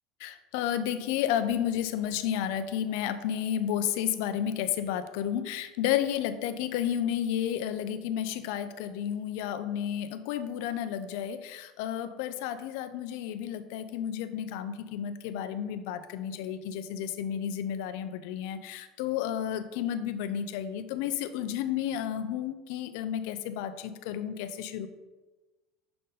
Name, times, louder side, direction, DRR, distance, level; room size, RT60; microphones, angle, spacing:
voice 1, 0.2-24.9, left 10 dB, 70° left, 11 dB, 0.5 m, -32 dB
6.6 x 4.1 x 3.9 m, 1.2 s
supercardioid pair, 145°, 0 cm